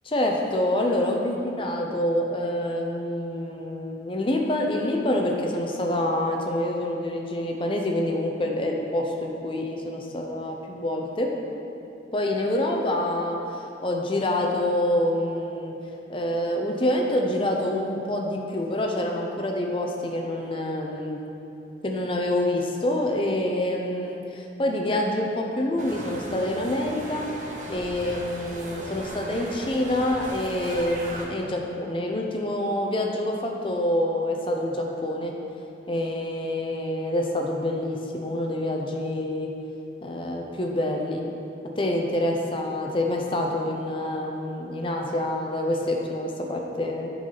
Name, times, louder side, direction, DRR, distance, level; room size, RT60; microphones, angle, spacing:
voice 1, 0.1-11.3 12.1-15.7 16.1-21.2 21.8-27.3 27.7-35.3 35.9-39.5 40.0-41.2 41.8-47.1, left 1 dB, 30° left, 1 dB, 0.6 m, -27 dB
sound 1, 25.8-31.3, right 1 dB, 45° right, 0.7 m, -37 dB
7.8 x 3.9 x 5.7 m, 2.8 s
head